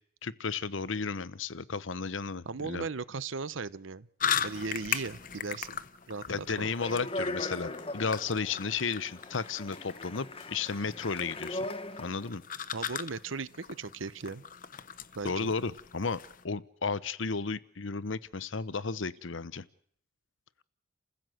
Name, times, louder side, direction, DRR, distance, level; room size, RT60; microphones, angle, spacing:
voice 1, 0.2-2.9 6.3-11.7 12.0-12.4 15.2-16.2 16.4-19.7, left 4 dB, 80° left, 17 dB, 0.9 m, -33 dB
voice 2, 2.4-4.1 4.4-5.8 6.1-6.7 12.7-14.4 15.1-15.5, right 4 dB, 85° right, 17 dB, 0.9 m, -37 dB
sound 1, 4.2-16.4, left 8 dB, 45° left, 1.0 m, -39 dB
Speech, 6.5-12.3, left 2 dB, 30° left, 1.3 m, -39 dB
29.5 x 15.5 x 7.8 m, 0.64 s
head